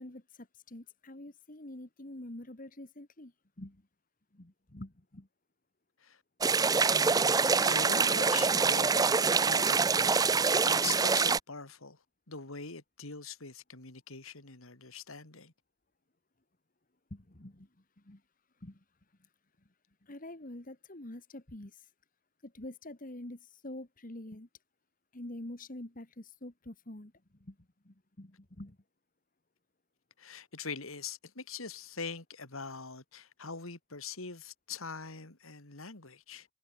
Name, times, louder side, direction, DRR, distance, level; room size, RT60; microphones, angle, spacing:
voice 1, 0.0-3.3 3.6-3.8 4.3-5.3 17.1-17.7 18.0-18.2 18.6-18.8 20.0-21.9 22.4-24.5 25.1-27.1 27.4-27.6 27.8-28.8, left 1 dB, 40° left, 1.8 m, -46 dB
sound 1, 6.4-11.4, right 5 dB, 20° right, 0.5 m, -25 dB
voice 2, 6.9-12.0 12.3-15.5 30.2-36.5, left 5 dB, 85° left, 3.3 m, -43 dB
head